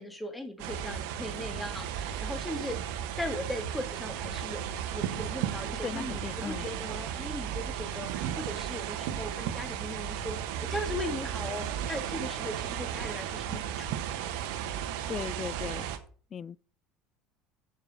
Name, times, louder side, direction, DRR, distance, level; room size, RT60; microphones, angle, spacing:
voice 1, 0.0-4.7 4.9-14.0, left 1 dB, 10° left, 2.3 m, -38 dB
sound 1, 0.6-16.0, right 9 dB, 75° right, 1.2 m, -35 dB
voice 2, 5.8-6.7 15.1-15.8 16.3-16.6, left 7 dB, 40° left, 0.4 m, -37 dB
7.4 x 7.2 x 6.5 m
hypercardioid pair, 80°, 0 cm